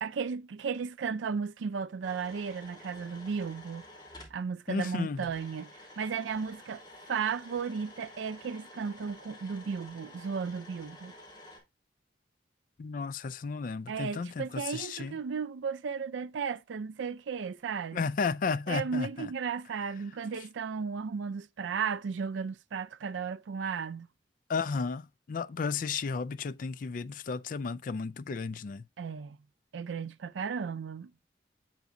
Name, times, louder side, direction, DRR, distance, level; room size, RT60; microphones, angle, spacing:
voice 1, 0.0-3.8 4.3-5.7 6.0-6.8 7.1-11.1 13.9-18.0 18.7-24.1 29.0-29.4 29.7-31.1, right 6 dB, 80° right, 0.4 m, -35 dB
sound 1, 2.0-4.4 5.2-11.6, left 1 dB, 20° left, 3.2 m, -51 dB
voice 2, 4.7-5.3 12.8-15.2 17.9-19.3 24.5-28.8, left 5 dB, 45° left, 0.3 m, -33 dB
8.1 x 5.8 x 2.5 m
head